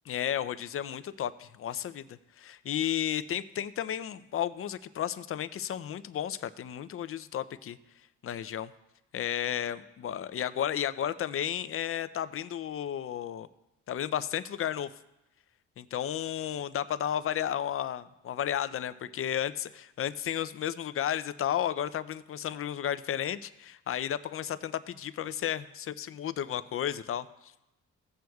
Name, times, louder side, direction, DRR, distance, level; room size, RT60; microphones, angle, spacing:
voice 1, 0.1-7.8 8.2-8.7 9.1-13.5 13.9-14.9 15.8-27.3, left 10 dB, 45° left, 14 dB, 0.5 m, -33 dB
16.0 x 7.7 x 2.3 m, 0.92 s
cardioid pair, 90°, 30 cm